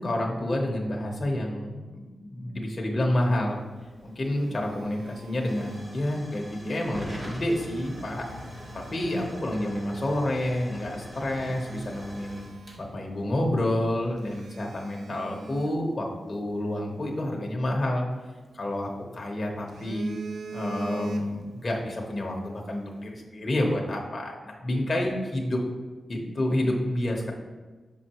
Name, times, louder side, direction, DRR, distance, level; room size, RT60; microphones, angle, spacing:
voice 1, 0.0-3.6 4.0-8.3 8.7-12.4 12.8-18.1 18.5-20.1 20.5-25.6 26.1-27.3, left 1 dB, 35° left, -1 dB, 1.0 m, -29 dB
Hiss / Fire / Tick, 3.8-14.2, equal, 35° right, 1.9 m, -44 dB
Telephone, 3.8-6.3 7.6-9.5 10.1-10.3 10.8-10.9 11.3-13.3 13.6-13.7 14.2-16.6 18.1-19.1 19.5-21.6 21.9-22.2, right 3 dB, 80° right, 0.3 m, -43 dB
5.7 x 5.5 x 3.0 m, 1.3 s
wide cardioid pair, 95°, 0 cm